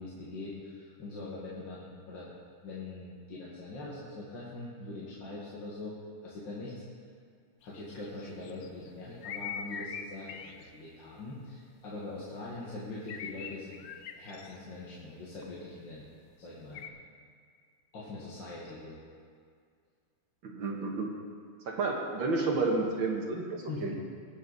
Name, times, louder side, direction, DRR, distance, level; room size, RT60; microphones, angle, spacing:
voice 1, 0.0-2.3 2.6-6.0 6.2-6.7 7.6-13.9 14.2-16.1 16.4-16.9 17.9-19.0 23.7-23.9, left 2 dB, 60° left, -7 dB, 2.4 m, -42 dB
sound 1, 7.6-8.9 9.2-10.6 13.1-14.5 16.7-16.9, left 7 dB, 80° left, 0.8 m, -41 dB
voice 2, 20.4-21.1 21.7-23.9, right 3 dB, 65° right, 0 dB, 2.1 m, -31 dB
21.0 x 7.6 x 4.1 m, 2.1 s
omnidirectional pair, 2.3 m